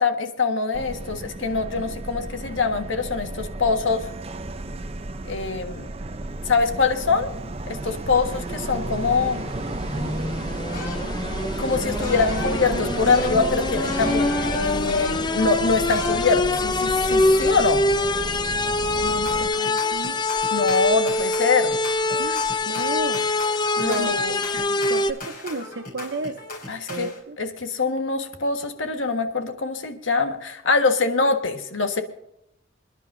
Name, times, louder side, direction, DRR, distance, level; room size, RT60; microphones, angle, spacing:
voice 1, 0.0-4.1 5.2-5.9 6.4-7.3 7.7-9.4 11.6-17.8 20.5-21.7 23.8-24.4 26.7-27.1 27.4-32.0, left 4 dB, 80° left, 5 dB, 1.6 m, -24 dB
Subway metro underground, 0.7-19.5, right 2 dB, 30° right, 0.7 m, -32 dB
sound 1, 8.4-25.1, left 2 dB, 20° left, 0.5 m, -25 dB
sound 2, 10.7-11.5 12.0-16.9 17.2-18.4 19.3-27.2, left 3 dB, 50° left, 4.8 m, -38 dB
voice 2, 19.0-20.2 22.2-23.2 23.8-24.2 24.5-26.4 26.9-27.4, right 3 dB, 65° right, 5 dB, 0.7 m, -33 dB
27.5 x 11.0 x 2.7 m, 0.82 s
head